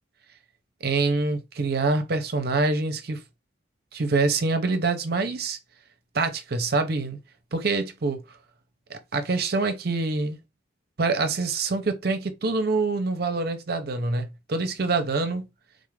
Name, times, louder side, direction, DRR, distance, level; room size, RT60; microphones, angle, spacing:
voice 1, 0.8-3.2 3.9-5.6 6.1-7.2 7.5-8.2 8.9-10.4 11.0-15.5, right 3 dB, 55° right, 0.6 m, -25 dB
3.8 x 2.4 x 3.2 m
head